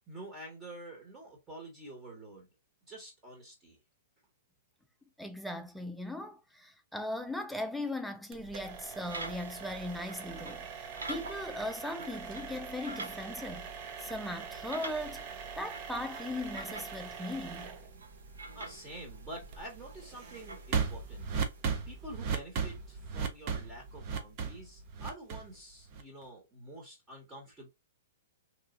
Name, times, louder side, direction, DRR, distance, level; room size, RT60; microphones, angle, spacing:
voice 1, 0.1-2.5 2.9-3.8 18.5-21.3 21.9-27.7, right 1 dB, 20° right, 1.2 m, -47 dB
voice 2, 5.2-13.7 14.0-15.3 15.6-17.8, left 1 dB, ahead, 0.5 m, -39 dB
sound 1, 8.3-26.2, right 6 dB, 40° right, 0.7 m, -39 dB
sound 2, 9.0-21.6, right 2 dB, 85° right, 0.7 m, -48 dB
3.1 x 2.3 x 2.5 m
hypercardioid pair, 125°, 0 cm